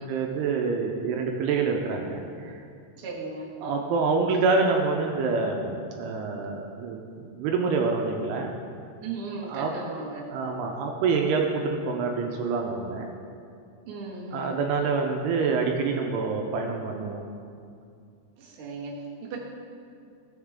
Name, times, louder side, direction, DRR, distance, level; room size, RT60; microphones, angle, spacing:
voice 1, 0.0-2.6 3.6-8.5 9.5-9.7 10.3-13.1 14.3-17.2, right 4 dB, 80° right, 2 dB, 2.6 m, -26 dB
voice 2, 3.0-3.5 9.0-10.3 13.9-14.5 18.4-19.4, right 3 dB, 55° right, -4 dB, 1.5 m, -37 dB
16.5 x 7.2 x 3.6 m, 2.4 s
omnidirectional pair, 5.0 m